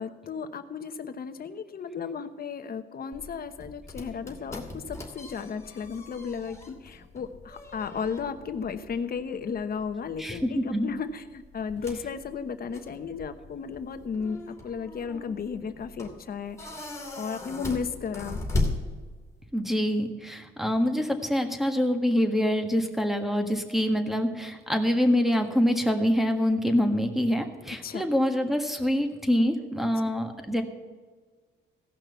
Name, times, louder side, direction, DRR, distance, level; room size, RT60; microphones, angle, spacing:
voice 1, 0.0-18.5 27.8-28.0 30.0-30.1, left 6 dB, 50° left, 9 dB, 1.0 m, -34 dB
sound 1, 3.1-19.5, left 2 dB, 15° left, 2.7 m, -38 dB
voice 2, 10.2-10.9 19.5-30.6, equal, ahead, 5 dB, 1.5 m, -25 dB
16.0 x 5.9 x 6.9 m, 1.5 s
cardioid pair, 90°, 20 cm